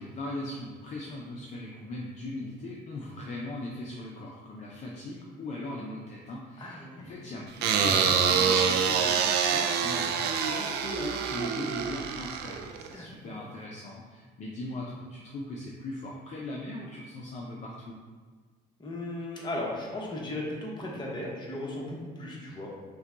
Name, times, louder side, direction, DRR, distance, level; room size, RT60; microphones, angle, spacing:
voice 1, 0.0-18.0, left 2 dB, 45° left, -3 dB, 0.6 m, -39 dB
voice 2, 6.6-7.3 12.9-13.5 18.8-22.7, left 1 dB, 25° left, -3 dB, 1.1 m, -37 dB
sound 1, 7.6-12.9, right 7 dB, 75° right, 0.4 m, -26 dB
5.6 x 2.3 x 3.8 m, 1.4 s
cardioid pair, 110°, 17 cm